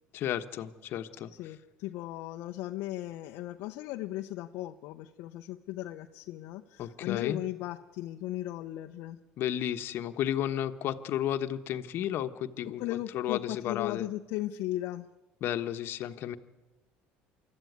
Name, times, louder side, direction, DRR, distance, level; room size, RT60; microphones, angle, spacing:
voice 1, 0.1-1.3 6.8-7.4 9.4-14.1 15.4-16.4, left 11 dB, 55° left, 9 dB, 1.3 m, -33 dB
voice 2, 1.3-9.2 12.8-15.1, left 15 dB, 75° left, 4 dB, 0.8 m, -37 dB
24.5 x 14.0 x 9.4 m, 1.1 s
supercardioid pair, 110°, 4 cm